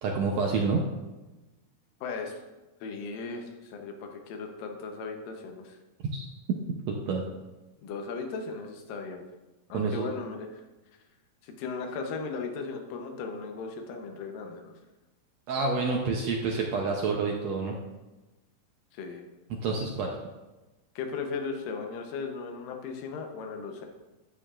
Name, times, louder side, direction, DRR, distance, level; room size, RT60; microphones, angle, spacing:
voice 1, 0.0-0.8 6.1-6.2 6.9-7.2 9.7-10.1 15.5-17.8 19.6-20.1, right 4 dB, 80° right, 0 dB, 1.5 m, -28 dB
voice 2, 2.0-2.4 2.8-3.4 3.7-5.8 7.8-9.2 9.7-10.5 11.4-14.7 18.9-19.2 21.0-23.9, left 4 dB, 75° left, 3 dB, 2.6 m, -37 dB
11.0 x 8.3 x 2.5 m, 1.1 s
omnidirectional pair, 4.0 m